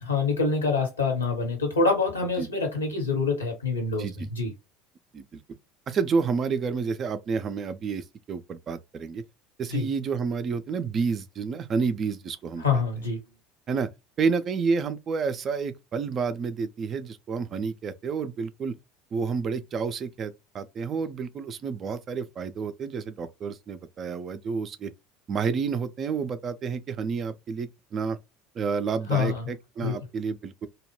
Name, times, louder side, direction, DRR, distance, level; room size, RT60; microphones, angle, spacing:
voice 1, 0.0-4.5 9.7-9.9 12.6-13.2 29.1-29.5 29.8-30.0, left 4 dB, 80° left, 1.0 m, -26 dB
voice 2, 5.9-9.2 9.6-12.6 13.7-13.9 14.2-18.7 19.1-24.9 25.3-28.2 28.6-30.7, right 5 dB, 35° right, 0.3 m, -29 dB
2.2 x 2.1 x 3.1 m
figure-of-eight pair, 65°, 0 cm